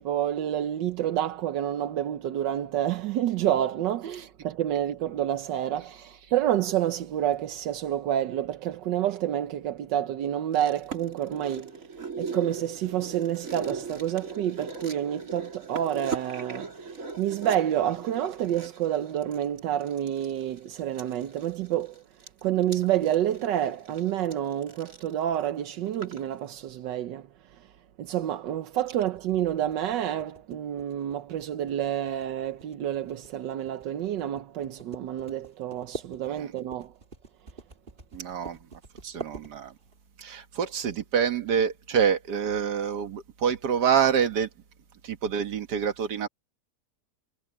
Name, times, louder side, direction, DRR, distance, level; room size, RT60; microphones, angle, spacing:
voice 1, 0.0-11.8 12.2-22.0 22.4-27.3 28.0-36.9, right 11 dB, 85° right, 1.5 m, -28 dB
sound 1, 10.5-26.2 26.5-26.6, right 4 dB, 50° right, 3.0 m, -39 dB
sound 2, 29.0-40.0, right 3 dB, 30° right, 2.6 m, -45 dB
voice 2, 38.1-38.6 39.0-39.7 40.2-44.5 45.0-46.3, right 7 dB, 70° right, 2.0 m, -26 dB
omnidirectional pair, 1.9 m